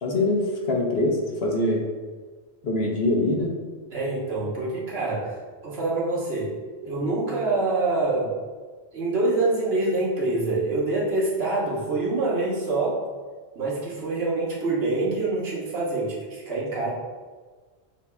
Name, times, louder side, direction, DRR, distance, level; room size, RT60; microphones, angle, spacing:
voice 1, 0.0-1.8 2.6-3.5, left 2 dB, 60° left, -1 dB, 0.9 m, -23 dB
voice 2, 3.9-5.4 5.6-6.6 6.8-8.3 8.9-13.0 13.5-16.9, right 2 dB, 65° right, -6 dB, 1.3 m, -25 dB
6.8 x 2.8 x 2.2 m, 1.4 s
omnidirectional pair, 1.2 m